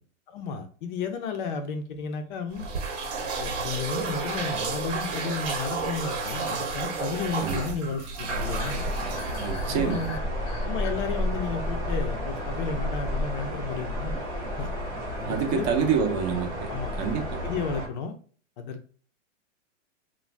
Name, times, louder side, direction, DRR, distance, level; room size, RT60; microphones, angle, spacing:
voice 1, 0.3-2.7 3.4-8.9 9.7-10.2 10.6-14.2 14.6-14.7 15.2-15.6 16.7-18.2 18.6-18.9, left 5 dB, 45° left, 7 dB, 0.4 m, -33 dB
sound 1, 1.7-2.0 2.3-2.4 2.7-2.8 3.7-3.9 6.0-10.9, left 5 dB, 85° left, 0.6 m, -44 dB
sound 2, 2.5-10.2, right 4 dB, 65° right, 0.8 m, -32 dB
sound 3, 8.3-17.9, equal, 10° right, 0.8 m, -31 dB
voice 2, 9.4-10.0 15.3-17.4, right 6 dB, 35° right, 4 dB, 0.5 m, -27 dB
2.5 x 2.0 x 3.1 m, 0.43 s
hypercardioid pair, 145°, 36 cm